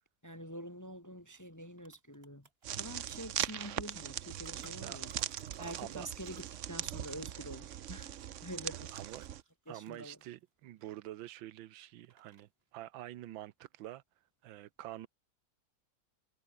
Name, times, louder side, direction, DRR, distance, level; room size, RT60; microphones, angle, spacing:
voice 1, 0.2-2.5 2.8-5.1 5.6-8.1 8.4-8.9 9.7-10.2, right 1 dB, 10° left, 1.3 m, -46 dB
sound 1, 1.2-1.3 1.5-5.9 6.2-10.2 10.5-11.6 12.0-12.6, right 4 dB, 30° right, 2.1 m, -63 dB
sound 2, 2.6-9.4, right 11 dB, 65° right, 0.7 m, -40 dB
voice 2, 4.8-5.3 5.6-6.4 8.9-9.3 9.7-14.0 14.4-15.1, right 14 dB, 90° right, 1.5 m, -47 dB
omnidirectional pair, 2.1 m